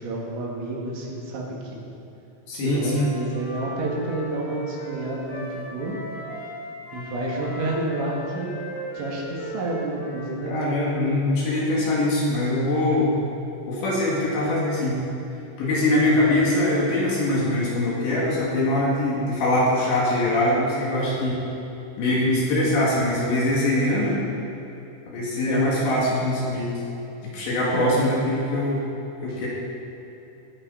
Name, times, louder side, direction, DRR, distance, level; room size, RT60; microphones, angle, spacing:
voice 1, 0.0-1.8 2.5-6.0 6.9-8.5 8.9-10.7 25.4-25.9 27.7-28.0, right 2 dB, 80° right, -3 dB, 4.5 m, -30 dB
voice 2, 2.5-3.1 10.5-13.1 13.7-15.0 15.6-21.4 22.0-24.2 25.1-26.8 27.3-28.8 29.2-29.5, left 1 dB, 70° left, -5 dB, 4.5 m, -22 dB
Wind instrument woodwind instrument, 2.8-6.6 6.8-11.0, left 1 dB, 55° left, 5.6 m, -37 dB
19.5 x 10.5 x 4.2 m, 2.9 s
omnidirectional pair, 5.2 m